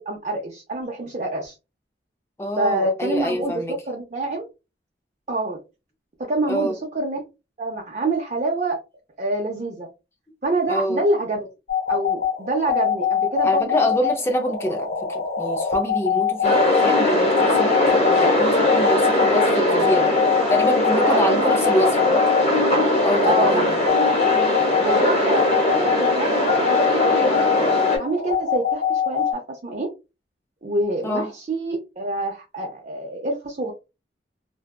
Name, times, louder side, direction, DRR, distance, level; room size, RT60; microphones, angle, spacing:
voice 1, 0.0-1.5 2.5-4.4 5.3-5.6 6.2-7.2 7.6-8.8 9.2-9.9 10.4-11.5 11.9-13.8 20.9-21.6 23.2-23.7 24.8-27.7 28.0-29.9 30.6-33.7, right 2 dB, 40° right, 0.5 m, -26 dB
voice 2, 2.4-3.7 6.5-6.8 10.7-11.0 13.4-20.2 20.5-22.3 23.0-23.8 31.0-31.3, equal, 15° left, 0.4 m, -26 dB
sound 1, 11.7-29.3, left 8 dB, 55° left, 0.6 m, -24 dB
sound 2, 16.4-28.0, left 1 dB, 40° left, 1.0 m, -20 dB
2.6 x 2.2 x 2.2 m
head